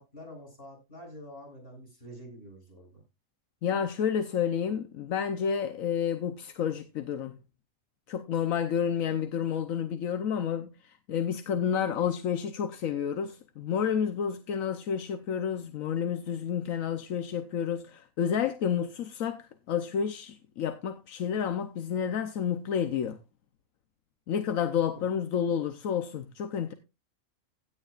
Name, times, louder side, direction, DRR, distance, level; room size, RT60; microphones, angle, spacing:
voice 1, 0.0-3.0 24.8-25.1, equal, 45° left, 7.0 m, -47 dB
voice 2, 3.6-7.3 8.1-23.2 24.3-26.7, left 8 dB, 80° left, 1.2 m, -30 dB
16.5 x 9.9 x 2.4 m
omnidirectional pair, 1.4 m